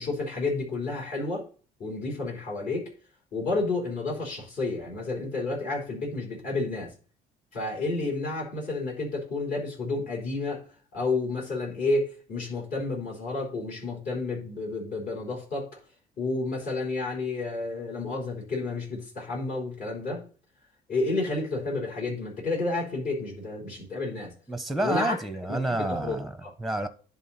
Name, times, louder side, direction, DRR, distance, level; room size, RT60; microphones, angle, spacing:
voice 1, 0.0-1.5 1.8-2.9 3.3-6.9 7.5-10.6 10.9-15.7 16.2-20.2 20.9-24.3 24.8-25.2 25.5-26.5, left 3 dB, 55° left, 4.0 m, -30 dB
voice 2, 24.5-26.9, right 1 dB, ahead, 0.8 m, -29 dB
10.5 x 3.6 x 4.2 m
cardioid pair, 110°, 17 cm